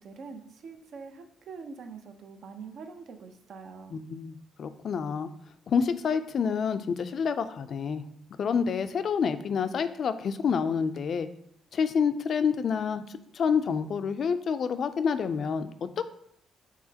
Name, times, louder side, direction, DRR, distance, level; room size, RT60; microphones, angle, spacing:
voice 1, 0.0-4.0, right 5 dB, 65° right, 6 dB, 0.6 m, -44 dB
voice 2, 3.9-5.3 5.7-8.0 8.4-11.3 11.7-13.1 13.3-15.7 16.0-16.1, left 6 dB, 55° left, 11 dB, 0.3 m, -28 dB
4.7 x 3.7 x 2.8 m, 0.72 s
cardioid pair, 90°, 0 cm